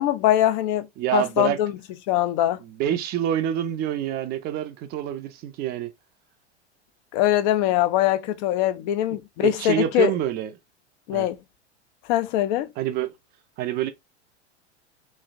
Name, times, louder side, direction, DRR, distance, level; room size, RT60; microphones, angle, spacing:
voice 1, 0.0-0.9 1.1-1.7 2.1-2.6 7.1-10.1 11.1-11.4 12.1-12.7, left 13 dB, 40° left, 0.5 m, -22 dB
voice 2, 1.0-1.6 2.6-5.9 9.4-10.5 11.1-11.3 12.8-13.1 13.6-13.9, right 11 dB, 30° right, 0.5 m, -26 dB
3.1 x 2.5 x 2.4 m
figure-of-eight pair, 90°, 34 cm